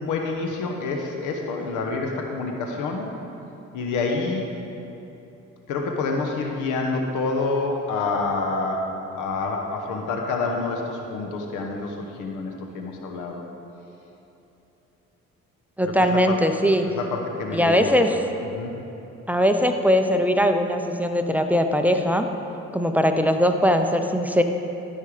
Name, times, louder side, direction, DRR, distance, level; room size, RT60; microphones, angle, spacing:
voice 1, 0.0-3.1 3.7-4.4 5.7-13.4 15.8-16.4 16.8-18.1 18.4-18.8, left 3 dB, 90° left, 2 dB, 1.1 m, -28 dB
voice 2, 15.8-16.9 17.5-18.2 19.3-22.3 22.7-24.4, equal, 5° right, 5 dB, 0.6 m, -20 dB
13.0 x 5.6 x 4.9 m, 3.0 s
cardioid pair, 90°, 30 cm